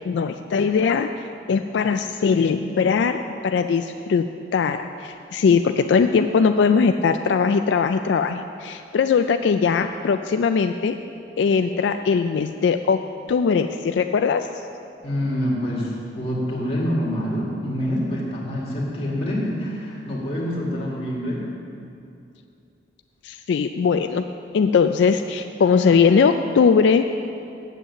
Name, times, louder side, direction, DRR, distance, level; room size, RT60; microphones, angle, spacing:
voice 1, 0.0-1.1 1.5-4.2 4.5-10.9 11.4-13.0 13.3-14.5 23.2-24.3 24.5-27.1, left 5 dB, 80° left, 8 dB, 0.3 m, -20 dB
voice 2, 15.0-21.4, equal, 30° left, -5 dB, 2.1 m, -26 dB
8.2 x 7.8 x 7.1 m, 2.6 s
head